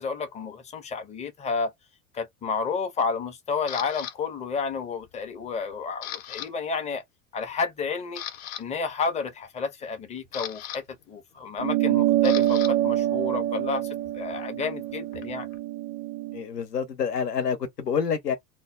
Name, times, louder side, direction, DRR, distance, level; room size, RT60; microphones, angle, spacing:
voice 1, 0.0-1.7 2.1-7.0 7.3-8.2 8.6-15.5, left 5 dB, 15° left, 0.5 m, -31 dB
Camera, 3.7-4.1 4.7-5.1 5.4-6.5 6.7-7.0 7.5-7.6 8.0-8.6 9.8-12.7 13.0-15.6, left 11 dB, 55° left, 0.7 m, -39 dB
sound 1, 11.6-16.4, right 13 dB, 35° right, 0.5 m, -25 dB
voice 2, 16.3-18.4, left 7 dB, 85° left, 0.9 m, -27 dB
2.2 x 2.1 x 3.1 m
figure-of-eight pair, 85°, 47 cm